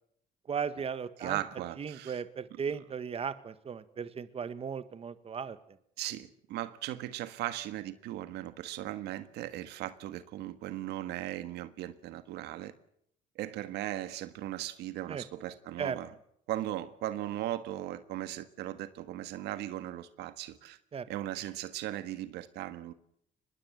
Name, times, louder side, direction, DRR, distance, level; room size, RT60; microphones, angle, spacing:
voice 1, 0.5-1.4 1.8-5.6 15.1-15.2 15.8-16.0 20.9-21.1, right 6 dB, 35° right, 12 dB, 1.6 m, -36 dB
voice 2, 1.2-2.2 6.0-12.7 13.3-16.1 16.5-20.8 21.1-22.9, right 14 dB, 85° right, 11 dB, 1.6 m, -38 dB
24.0 x 21.0 x 7.9 m, 0.71 s
cardioid pair, 110°, 17 cm